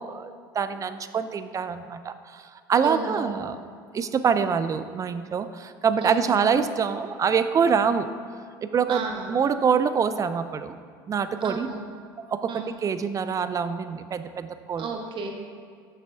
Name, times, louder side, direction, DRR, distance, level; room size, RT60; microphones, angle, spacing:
voice 1, 0.0-3.6 3.9-8.1 8.6-9.0 9.3-10.7 11.1-11.7 12.3-14.9, right 6 dB, 30° right, 11 dB, 0.4 m, -25 dB
voice 2, 2.8-3.4 6.0-6.6 8.9-9.4 11.4-11.8 12.5-12.8 14.7-15.4, right 4 dB, 45° right, 2 dB, 1.0 m, -33 dB
6.6 x 6.1 x 3.4 m, 2.1 s
hypercardioid pair, 75°, 11 cm